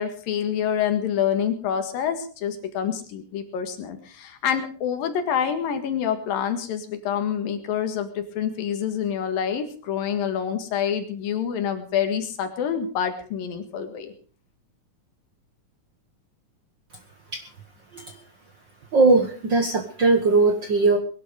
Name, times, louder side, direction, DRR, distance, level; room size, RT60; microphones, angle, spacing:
voice 1, 0.0-14.1, left 8 dB, 85° left, 7 dB, 3.5 m, -27 dB
voice 2, 18.9-21.0, right 3 dB, 55° right, 5 dB, 1.2 m, -19 dB
21.0 x 11.5 x 5.1 m, 0.42 s
omnidirectional pair, 4.0 m